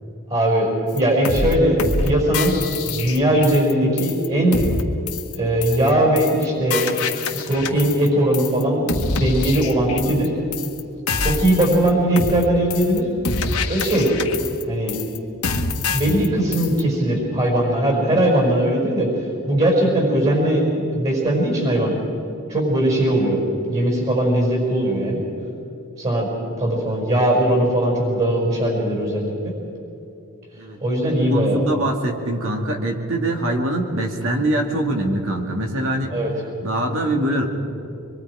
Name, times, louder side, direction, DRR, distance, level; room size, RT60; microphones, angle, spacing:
voice 1, 0.3-0.7 0.9-4.6 5.4-6.8 7.4-8.9 9.2-10.3 11.2-13.1 13.7-14.1 14.7-15.0 15.8-19.1 19.4-21.9 22.5-23.4 23.7-25.2 26.0-26.3 26.6-29.5 30.8-31.6 36.1-36.3, right 1 dB, 30° right, -1 dB, 5.2 m, -19 dB
sound 1, 1.0-1.1 1.2-1.5 1.8-2.1 2.3-3.7 4.0-4.3 4.5-4.8 5.1-5.3 5.6-5.9 6.2-6.4 6.7-8.1 8.3-8.6 8.9-10.3 10.5-10.8 11.1-11.9 12.2-12.4 12.7-13.0 13.2-14.6 14.9-15.2 15.4-16.3 16.5-16.8, left 4 dB, 80° left, 1.6 m, -25 dB
voice 2, 30.6-36.2 36.6-37.5, right 1 dB, 60° right, 2 dB, 2.4 m, -23 dB
25.0 x 23.0 x 5.0 m, 2.7 s
head